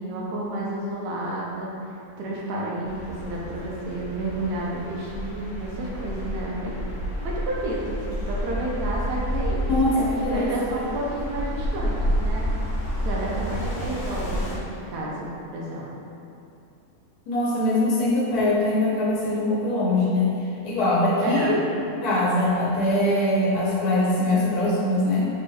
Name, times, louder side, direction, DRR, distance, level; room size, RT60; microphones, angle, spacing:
voice 1, 0.0-1.7 2.2-6.8 7.2-12.5 13.0-15.9 21.2-21.6, right 1 dB, 80° right, -4 dB, 1.2 m, -31 dB
sound 1, 2.8-14.5, equal, 50° left, 1.3 m, -30 dB
voice 2, 9.7-10.8 17.3-20.3 20.6-21.6 22.0-25.3, left 1 dB, 75° left, -6 dB, 1.3 m, -22 dB
4.6 x 4.3 x 2.3 m, 2.7 s
omnidirectional pair, 1.6 m